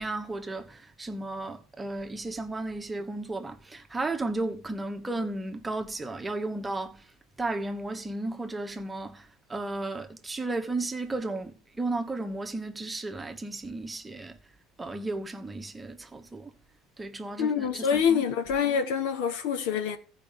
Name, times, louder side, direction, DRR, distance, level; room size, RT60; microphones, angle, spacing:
voice 1, 0.0-7.0 7.4-14.4 14.8-16.5 17.0-18.2, right 2 dB, 15° right, 1.3 m, -34 dB
voice 2, 17.4-20.0, left 7 dB, 75° left, 1.3 m, -26 dB
14.5 x 5.0 x 5.2 m
supercardioid pair, 85°, 0 cm